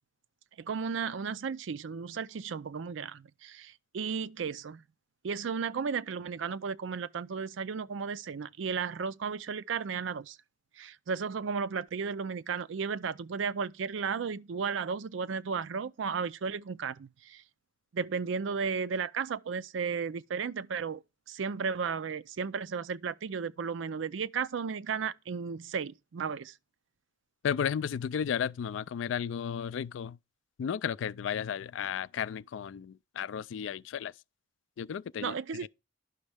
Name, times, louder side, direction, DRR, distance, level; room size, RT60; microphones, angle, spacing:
voice 1, 0.6-4.8 5.2-10.4 10.8-17.4 17.9-21.0 21.3-26.5 35.2-35.7, right 6 dB, 85° right, 0.4 m, -34 dB
voice 2, 27.4-30.2 30.6-34.1 34.8-35.3 35.6-35.7, left 8 dB, 85° left, 0.3 m, -33 dB
10.5 x 6.2 x 3.4 m
head